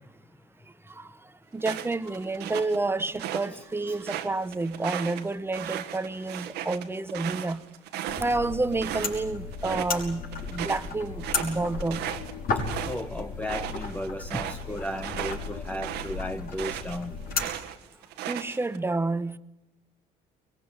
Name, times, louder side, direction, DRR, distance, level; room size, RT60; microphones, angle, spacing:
voice 1, 1.5-7.7 8.2-12.1 14.3-14.4 18.3-19.4, right 2 dB, 15° right, 1.1 m, -29 dB
sound 1, 1.6-3.5 3.9-9.2 9.5-10.0 10.3-17.0 17.3-18.8, right 11 dB, 85° right, 1.7 m, -36 dB
sound 2, 8.1-17.5, left 4 dB, 60° left, 5.9 m, -35 dB
voice 2, 12.9-17.1, left 1 dB, 10° left, 1.0 m, -35 dB
23.5 x 21.5 x 9.9 m
cardioid pair, 110°, 17 cm